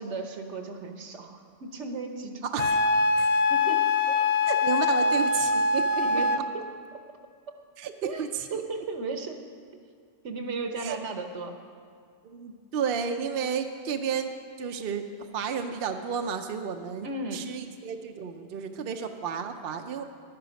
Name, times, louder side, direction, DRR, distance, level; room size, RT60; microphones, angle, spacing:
voice 1, 0.0-2.4 3.5-4.2 5.8-6.6 8.0-8.3 8.5-9.4 10.2-11.6 17.0-17.5, right 3 dB, 80° right, 5 dB, 1.3 m, -35 dB
voice 2, 2.4-2.8 3.2-3.4 4.5-5.8 7.8-8.5 10.8-11.0 12.2-14.3 14.6-20.0, right 6 dB, 60° right, 6 dB, 0.8 m, -32 dB
Wind instrument woodwind instrument, 2.6-6.4, left 3 dB, 80° left, 0.3 m, -23 dB
12.0 x 10.5 x 5.2 m, 2.2 s
omnidirectional pair, 1.2 m